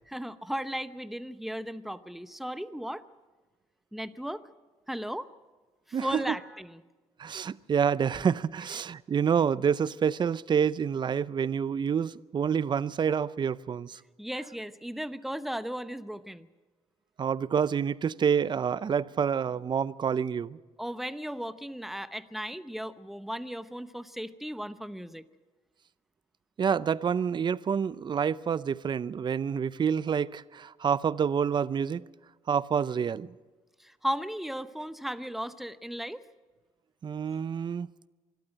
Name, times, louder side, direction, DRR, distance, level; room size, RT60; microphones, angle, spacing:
voice 1, 0.1-3.0 3.9-4.4 4.9-5.3 5.9-6.8 14.2-16.5 20.8-25.2 33.8-36.2, equal, ahead, 0.8 m, -36 dB
voice 2, 5.9-6.3 7.2-14.0 17.2-20.6 26.6-32.0 32.5-33.3 37.0-37.9, right 7 dB, 40° right, 0.6 m, -28 dB
24.5 x 13.0 x 9.0 m
cardioid pair, 105°, 12 cm